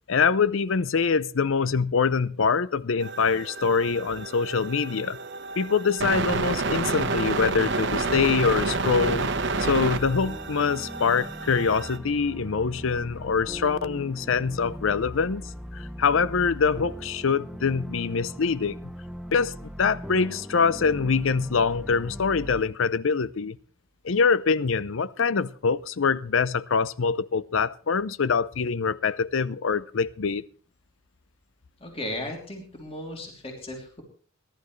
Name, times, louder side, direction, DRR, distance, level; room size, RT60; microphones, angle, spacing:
voice 1, 0.1-5.2 5.6-9.3 9.6-15.4 15.7-18.8 19.3-19.5 19.8-23.6 24.0-30.4, left 5 dB, 70° left, 0.6 m, -24 dB
sound 1, 3.0-12.0, right 3 dB, 60° right, 1.2 m, -29 dB
sound 2, 7.9-22.6, equal, 5° right, 0.6 m, -40 dB
voice 2, 31.8-34.0, left 1 dB, 30° left, 3.1 m, -36 dB
21.0 x 12.0 x 3.2 m
head